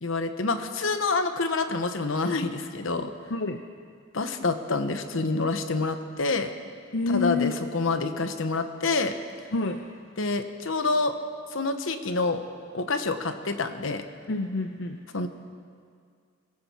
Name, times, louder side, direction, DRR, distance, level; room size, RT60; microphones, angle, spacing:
voice 1, 0.0-3.1 4.1-6.5 7.1-9.1 10.2-11.2 11.5-12.4 12.7-14.0 15.1-15.3, left 3 dB, 75° left, 8 dB, 1.0 m, -27 dB
voice 2, 3.3-3.6 6.9-7.6 9.5-9.9 14.3-15.0, left 3 dB, 60° left, 6 dB, 0.6 m, -28 dB
22.5 x 14.0 x 4.3 m, 2.2 s
head